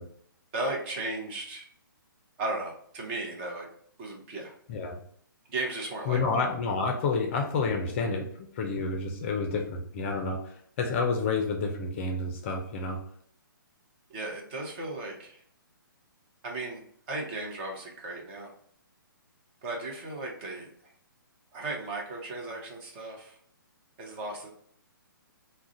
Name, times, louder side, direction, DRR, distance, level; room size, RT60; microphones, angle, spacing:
voice 1, 0.5-1.7 2.4-3.7 4.0-4.5 5.5-6.4 14.1-15.4 16.4-18.5 19.6-20.9 21.5-23.4 24.0-24.5, right 2 dB, 30° right, 0 dB, 0.7 m, -36 dB
voice 2, 6.1-13.0, left 4 dB, 35° left, 3 dB, 0.4 m, -29 dB
2.4 x 2.1 x 3.8 m, 0.63 s
figure-of-eight pair, 135°, 12 cm